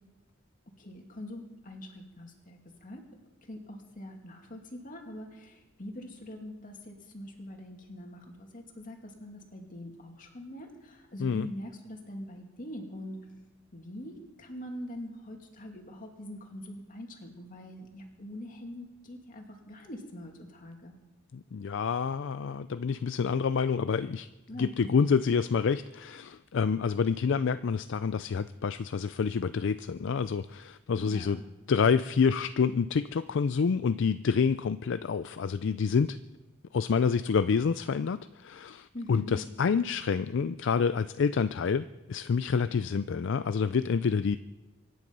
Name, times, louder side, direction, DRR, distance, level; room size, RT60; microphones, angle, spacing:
voice 1, 0.8-3.1 3.4-13.2 13.7-21.0 24.5-25.0 30.9-31.4 38.9-39.4, left 1 dB, 45° left, 2 dB, 2.6 m, -43 dB
voice 2, 21.3-24.3 24.6-31.4 31.7-36.2 36.7-44.4, left 5 dB, 65° left, 13 dB, 0.4 m, -28 dB
24.5 x 10.5 x 5.4 m, 1.1 s
head